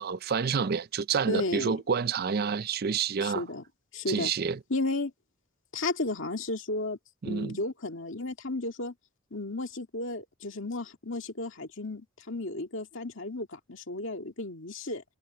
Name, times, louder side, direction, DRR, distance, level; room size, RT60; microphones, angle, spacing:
voice 1, 0.0-3.4 4.1-4.6 7.2-7.6, right 6 dB, 45° right, 0.4 m, -28 dB
voice 2, 1.3-1.8 3.2-3.6 3.9-4.3 4.7-5.1 5.7-7.0 7.2-8.9 9.3-15.0, left 2 dB, 60° left, 2.3 m, -33 dB
head